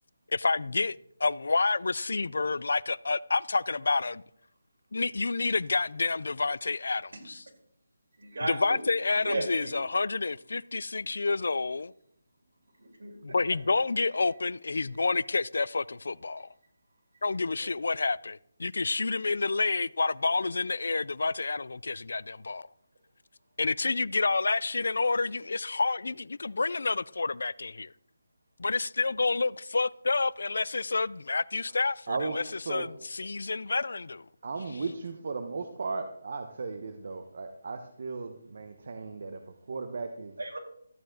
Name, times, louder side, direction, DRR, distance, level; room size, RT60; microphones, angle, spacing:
voice 1, 0.3-4.2 4.9-7.4 8.4-11.9 13.2-16.5 17.2-22.7 23.6-27.9 28.6-32.4 32.7-34.3, left 3 dB, 70° left, 0.4 m, -29 dB
voice 2, 8.2-8.8 9.1-9.7 12.8-13.1 40.4-40.6, right 2 dB, 70° right, 4.3 m, -35 dB
voice 3, 32.1-32.9 34.4-40.3, right 4 dB, 50° right, 1.0 m, -36 dB
13.5 x 9.0 x 3.9 m
hypercardioid pair, 170°, 0 cm